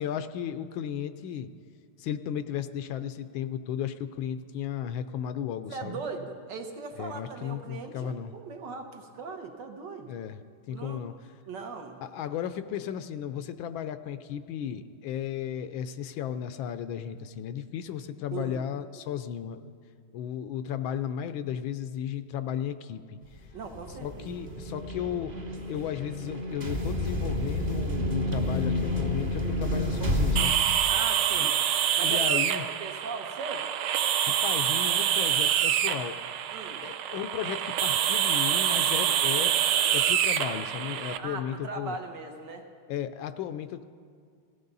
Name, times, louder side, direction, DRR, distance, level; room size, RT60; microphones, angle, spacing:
voice 1, 0.0-1.5 2.0-6.0 7.0-8.3 10.1-10.4 10.7-11.1 12.0-19.7 20.1-23.4 24.0-25.3 25.7-30.6 31.4-31.5 32.0-32.6 34.2-36.2 36.8-39.5 39.9-42.0 42.9-43.8, left 9 dB, 80° left, 11 dB, 1.3 m, -34 dB
voice 2, 5.7-10.1 10.7-11.0 11.5-12.0 18.3-18.6 23.5-24.3 30.9-31.6 31.9-33.6 36.5-36.8 41.2-42.6, right 4 dB, 65° right, 4 dB, 1.6 m, -39 dB
sound 1, 23.4-30.4, left 1 dB, 30° right, 0.9 m, -30 dB
sound 2, 30.4-41.2, right 10 dB, 85° right, 1.5 m, -26 dB
17.0 x 15.0 x 4.0 m, 2.1 s
omnidirectional pair, 2.3 m